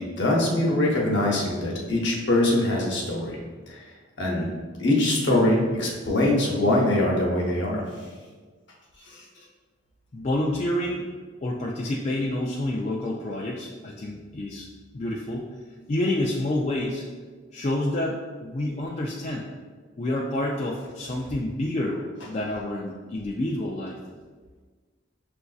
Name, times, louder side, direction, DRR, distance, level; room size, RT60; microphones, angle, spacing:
voice 1, 0.0-3.4 3.7-3.8 4.2-4.5 4.8-7.8 9.0-9.2, left 1 dB, 60° left, -2 dB, 0.9 m, -23 dB
voice 2, 10.1-11.1 11.4-14.7 14.9-15.5 15.9-17.0 17.5-19.5 20.0-22.0 22.3-24.0, left 1 dB, 35° left, -3 dB, 0.3 m, -28 dB
6.8 x 2.6 x 2.3 m, 1.4 s
head